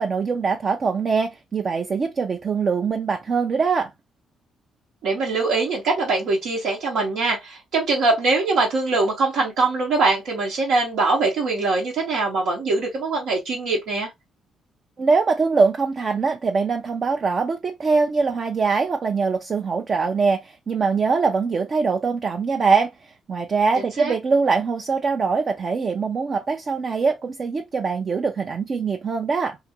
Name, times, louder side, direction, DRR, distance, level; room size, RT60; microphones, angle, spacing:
voice 1, 0.0-3.9 15.0-29.6, right 4 dB, 45° right, 0.4 m, -22 dB
voice 2, 5.0-14.1 23.8-24.1, right 3 dB, 80° right, 0.9 m, -22 dB
2.6 x 2.4 x 2.7 m
cardioid pair, 90°, 0 cm